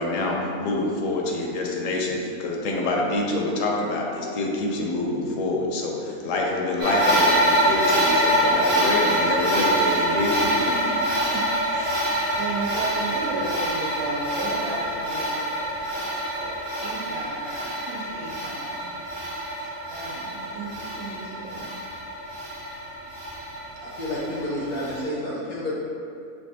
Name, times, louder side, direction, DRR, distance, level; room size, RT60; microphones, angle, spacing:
voice 1, 0.0-10.4, left 2 dB, 70° left, -1 dB, 0.9 m, -26 dB
sound 1, 6.8-25.0, right 1 dB, 35° right, 0.9 m, -25 dB
voice 2, 10.3-19.0 19.6-21.7, right 3 dB, 75° right, -3 dB, 1.1 m, -35 dB
voice 3, 23.8-25.7, left 1 dB, 90° left, -7 dB, 1.6 m, -30 dB
5.8 x 2.2 x 2.6 m, 2.5 s
omnidirectional pair, 1.6 m